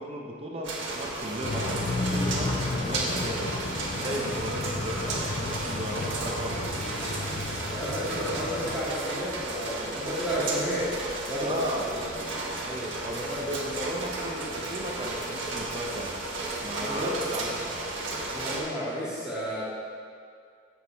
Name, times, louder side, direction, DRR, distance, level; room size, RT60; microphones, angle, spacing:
voice 1, 0.0-3.6 4.0-6.7 8.1-8.2 11.4-11.9 12.6-16.1 16.6-17.9, equal, 30° right, -1 dB, 0.8 m, -35 dB
sound 1, 0.6-18.6, right 2 dB, 75° right, 1.3 m, -33 dB
sound 2, 1.4-8.8, left 3 dB, 35° left, 0.3 m, -33 dB
voice 2, 7.7-10.9 11.3-12.1 13.3-13.4 16.7-17.1 18.3-19.6, equal, 5° right, -12 dB, 2.0 m, -32 dB
7.2 x 6.5 x 4.6 m, 2.2 s
head